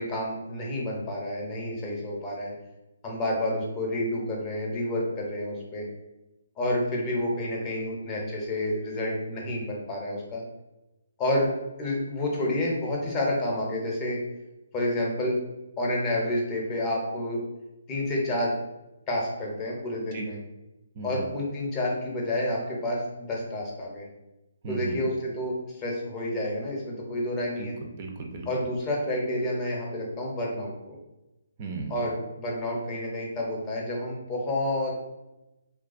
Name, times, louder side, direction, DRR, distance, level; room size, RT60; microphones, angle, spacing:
voice 1, 0.0-2.5 3.0-5.9 6.6-10.4 11.2-11.5 11.8-14.2 14.7-15.4 15.8-17.4 17.9-18.6 19.1-20.4 21.0-24.1 24.7-27.7 28.5-31.0 31.9-34.9, left 1 dB, 20° left, -2 dB, 0.6 m, -29 dB
voice 2, 24.6-25.0 27.5-28.5 31.6-32.0, right 4 dB, 35° right, 1 dB, 0.4 m, -36 dB
2.3 x 2.3 x 2.4 m, 0.96 s
figure-of-eight pair, 140°, 0 cm